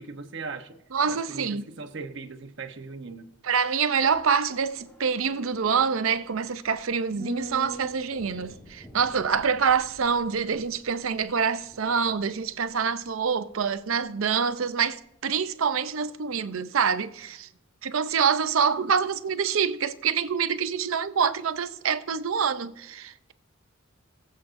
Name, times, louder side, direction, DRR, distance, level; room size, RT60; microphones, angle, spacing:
voice 1, 0.0-0.8 1.1-3.3, right 4 dB, 60° right, 1.0 m, -39 dB
voice 2, 0.9-1.6 3.4-17.5 17.8-23.3, right 6 dB, 90° right, 0.6 m, -26 dB
sound 1, 3.8-14.2 14.5-14.6, right 1 dB, 10° left, 1.3 m, -46 dB
21.0 x 7.6 x 2.6 m
head